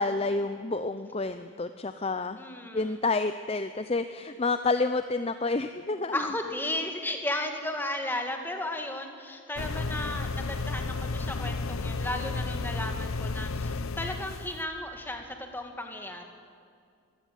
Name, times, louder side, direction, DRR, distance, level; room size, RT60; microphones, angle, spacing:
voice 1, 0.0-2.4 2.7-6.3, left 3 dB, 30° left, 10 dB, 0.6 m, -29 dB
voice 2, 2.4-2.9 6.1-15.3 15.5-16.2, left 1 dB, 10° left, 4 dB, 2.1 m, -34 dB
sound 1, 9.6-14.6, left 3 dB, 80° left, 0.7 m, -32 dB
23.5 x 15.5 x 9.3 m, 2.3 s
head